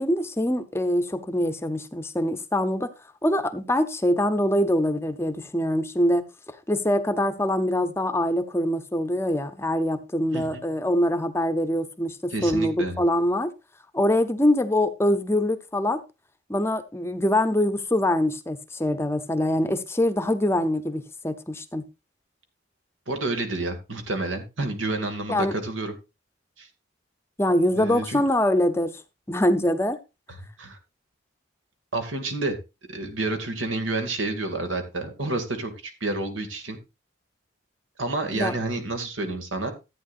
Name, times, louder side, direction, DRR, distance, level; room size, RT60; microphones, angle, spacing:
voice 1, 0.0-2.9 3.2-13.5 13.9-16.0 16.5-21.8 25.3-25.5 27.4-29.0 29.3-30.0 38.3-38.5, left 1 dB, 15° left, 0.6 m, -24 dB
voice 2, 10.3-10.7 12.3-13.0 23.1-25.9 26.6-26.7 27.8-28.2 30.6-30.8 31.9-32.5 32.9-36.8 38.0-39.7, right 2 dB, 90° right, 2.1 m, -29 dB
14.0 x 9.0 x 2.5 m
head